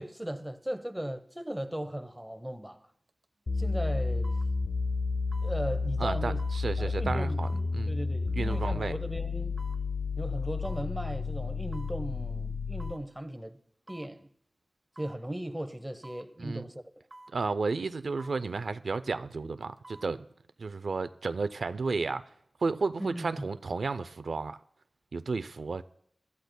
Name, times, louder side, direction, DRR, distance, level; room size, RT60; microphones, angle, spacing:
voice 1, 0.0-2.8 3.6-4.3 5.4-6.4 6.8-9.6 10.2-13.6 13.9-14.3 15.0-16.8 23.0-23.5, right 1 dB, 10° right, 0.8 m, -37 dB
sound 1, 3.1-3.2 4.2-4.5 5.3-5.6 6.4-6.6 7.4-7.7 8.5-8.7 9.6-9.8 10.6-10.9 11.7-12.0 12.8-13.1 13.9-14.1 14.9-15.2 16.0-16.3 17.1-17.4 18.2-18.4 19.6-20.1 20.5-20.6, right 2 dB, 45° right, 0.9 m, -50 dB
sound 2, 3.5-13.0, left 3 dB, 70° left, 0.6 m, -31 dB
voice 2, 6.0-7.9 8.4-9.0 16.4-16.7 17.3-20.3 20.6-22.3 22.6-24.6 25.1-25.8, right 4 dB, 85° right, 0.4 m, -32 dB
24.0 x 13.5 x 2.2 m
wide cardioid pair, 80°, 0 cm